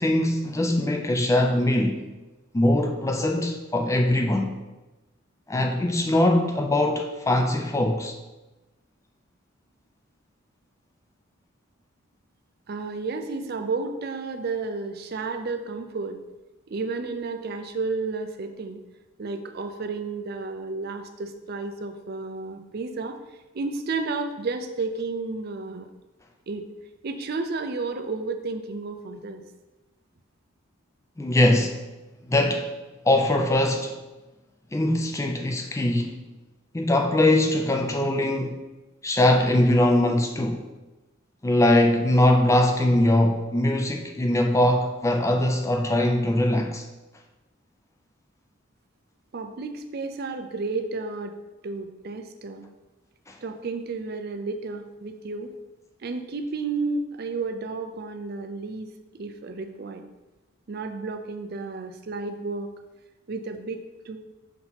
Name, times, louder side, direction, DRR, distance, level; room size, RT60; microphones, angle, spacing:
voice 1, 0.0-2.1 2.5-4.5 5.5-8.1 31.2-31.8 32.3-32.7 33.0-34.0 34.7-36.2 36.7-38.6 39.0-40.7 41.4-46.8 53.3-53.4, left 1 dB, 15° left, 0.4 m, -22 dB
voice 2, 12.7-16.2 16.7-18.8 19.2-23.2 23.5-25.9 26.5-26.7 27.0-29.4 49.3-51.4 51.6-52.6 53.4-55.5 56.0-60.1 60.7-62.7 63.3-64.2, right 3 dB, 50° right, 0.4 m, -32 dB
5.9 x 2.9 x 5.6 m
head